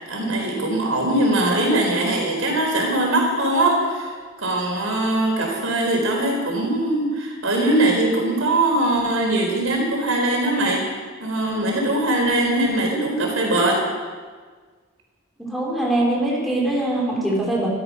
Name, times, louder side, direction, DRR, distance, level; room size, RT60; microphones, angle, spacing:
voice 1, 0.0-4.1 4.4-10.8 11.2-13.8, right 1 dB, 85° right, 0 dB, 4.1 m, -21 dB
voice 2, 15.4-17.7, right 1 dB, ahead, -4 dB, 3.7 m, -23 dB
14.5 x 12.5 x 6.2 m, 1.5 s
head